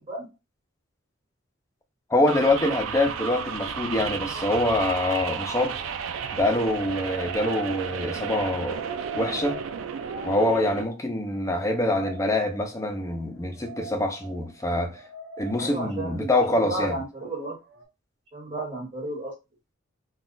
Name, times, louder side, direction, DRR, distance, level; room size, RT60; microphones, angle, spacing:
voice 1, 2.1-5.8 6.3-8.9 9.2-9.6 10.2-15.0 15.4-17.0, left 1 dB, 15° left, 0.4 m, -25 dB
sound 1, 2.3-10.8, right 7 dB, 85° right, 0.3 m, -33 dB
sound 2, 3.8-17.3 17.7-17.9, right 2 dB, 60° right, 0.7 m, -42 dB
voice 2, 15.6-17.6 18.3-19.3, right 1 dB, 25° right, 1.3 m, -33 dB
2.3 x 2.3 x 3.7 m
head